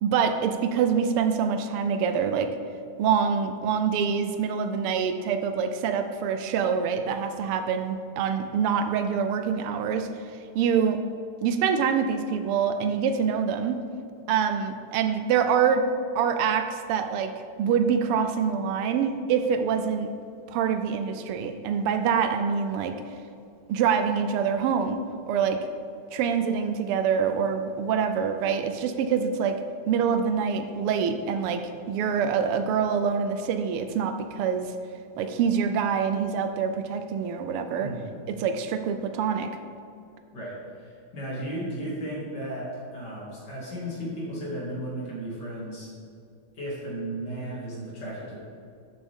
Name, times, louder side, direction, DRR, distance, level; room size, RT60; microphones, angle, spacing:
voice 1, 0.0-2.5 3.0-10.1 10.5-11.0 11.4-13.8 14.3-15.9 16.1-17.3 17.6-20.1 20.5-23.0 23.7-25.0 25.3-25.6 26.1-29.6 29.9-34.7 35.2-37.9 38.3-39.5, right 7 dB, 90° right, 8 dB, 1.6 m, -25 dB
voice 2, 37.8-38.1 40.3-45.9 46.5-48.4, right 1 dB, 50° left, -6 dB, 3.1 m, -35 dB
12.0 x 7.9 x 3.7 m, 2.4 s
omnidirectional pair, 2.4 m